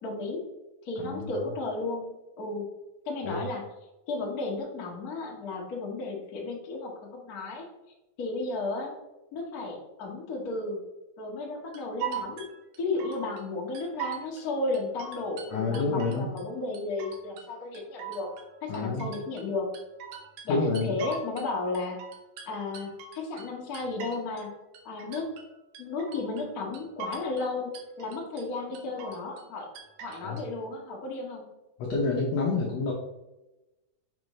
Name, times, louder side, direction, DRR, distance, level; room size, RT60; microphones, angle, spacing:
voice 1, 0.0-0.4 0.8-2.7 3.0-3.7 4.1-7.7 8.2-8.9 9.3-10.8 11.2-12.5 12.8-18.3 18.6-19.7 20.4-22.0 22.5-24.5 24.8-25.3 25.8-29.7 30.0-31.4, left 3 dB, 50° left, -3 dB, 1.0 m, -34 dB
voice 2, 1.0-1.3 3.2-3.4 15.5-16.3 18.7-19.1 20.5-21.0 30.2-30.4 31.8-32.9, left 3 dB, 75° left, -3 dB, 1.6 m, -28 dB
sound 1, 11.7-13.4 13.8-14.4 14.7-16.5 16.7-17.5 17.8-21.5 21.8-24.5 24.7-25.5 25.8-26.5 26.7-27.5 27.7-28.5 28.7-29.5 29.8-30.4, right 6 dB, 80° right, 2.7 m, -40 dB
7.3 x 5.2 x 3.1 m, 0.98 s
omnidirectional pair, 4.2 m